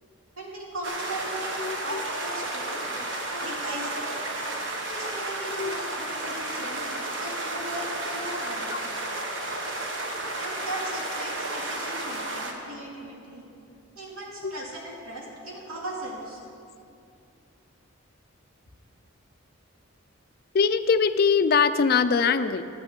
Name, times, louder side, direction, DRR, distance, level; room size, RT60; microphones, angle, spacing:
voice 1, 0.4-2.8 3.3-4.2 4.9-6.9 7.1-8.8 10.4-13.4 14.0-16.4, right 1 dB, 85° right, -2 dB, 2.5 m, -38 dB
sound 1, 0.8-12.5, right 2 dB, 60° right, 1.3 m, -32 dB
voice 2, 20.5-22.6, left 5 dB, 45° left, 12 dB, 0.4 m, -22 dB
11.0 x 8.3 x 6.7 m, 2.6 s
head